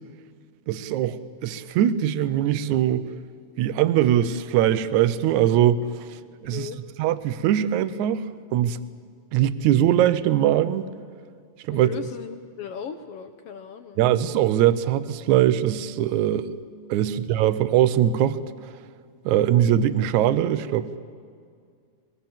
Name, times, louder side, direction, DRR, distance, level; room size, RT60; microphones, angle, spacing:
voice 1, 0.7-3.1 3.6-6.7 7.0-8.2 8.5-8.8 9.3-10.8 11.7-11.9 14.0-16.5 16.9-18.4 19.3-21.0, right 11 dB, 80° right, 13 dB, 2.2 m, -21 dB
voice 2, 6.5-6.8 11.7-14.1 17.0-17.1, left 7 dB, 65° left, 8 dB, 1.6 m, -37 dB
24.0 x 22.0 x 7.3 m, 2.1 s
omnidirectional pair, 3.5 m